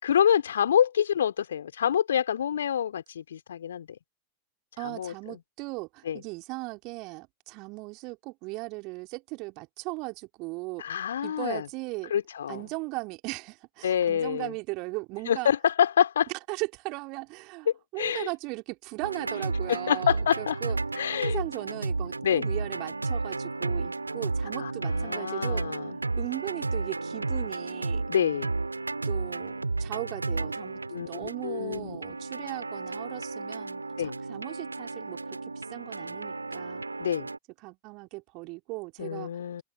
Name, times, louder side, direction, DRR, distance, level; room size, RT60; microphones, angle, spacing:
voice 1, 0.0-3.9 4.8-5.1 6.1-6.2 10.8-11.6 12.1-12.6 13.8-14.5 15.3-16.3 18.0-18.3 19.7-20.6 21.0-21.4 22.2-22.4 24.6-25.9 28.1-28.5 30.9-32.0 34.0-34.1 37.0-37.3 39.0-39.6, left 9 dB, 65° left, 3.1 m, -26 dB
voice 2, 4.8-12.1 12.5-15.5 16.5-20.8 21.1-25.6 25.9-28.1 29.1-36.8 37.6-39.3, right 26 dB, 40° right, 3.6 m, -38 dB
sound 1, 19.0-37.4, right 3 dB, 80° right, 1.9 m, -33 dB
figure-of-eight pair, 90°, 0 cm